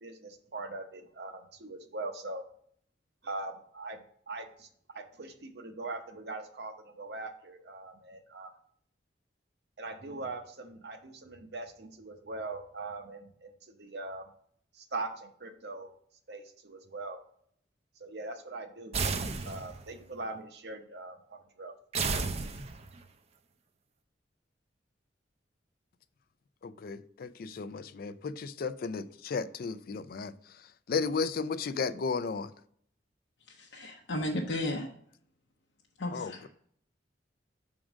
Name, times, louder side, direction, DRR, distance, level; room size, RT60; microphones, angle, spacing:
voice 1, 0.0-2.5 3.2-4.7 4.9-8.5 9.8-14.3 14.7-15.9 16.3-17.2 18.0-19.0 19.4-21.8 22.0-22.1, right 2 dB, 65° right, 0.8 m, -41 dB
sound 1, 18.9-19.9 21.9-23.0, right 4 dB, 35° right, 0.5 m, -32 dB
voice 2, 26.6-32.5 36.1-36.5, left 5 dB, 55° left, 0.4 m, -34 dB
voice 3, 33.5-34.9 36.0-36.5, left 1 dB, 75° left, 0.8 m, -34 dB
6.1 x 3.8 x 6.1 m
head